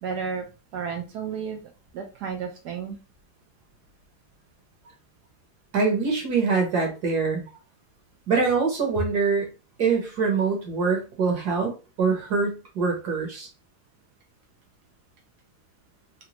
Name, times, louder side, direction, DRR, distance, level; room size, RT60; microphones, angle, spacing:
voice 1, 0.0-0.5 0.7-1.6 1.9-3.0, right 6 dB, 75° right, 3 dB, 0.9 m, -32 dB
voice 2, 5.7-7.4 8.3-9.5 9.8-11.7 12.0-13.5, right 4 dB, 60° right, 1 dB, 1.3 m, -24 dB
3.9 x 2.1 x 2.9 m, 0.31 s
omnidirectional pair, 2.2 m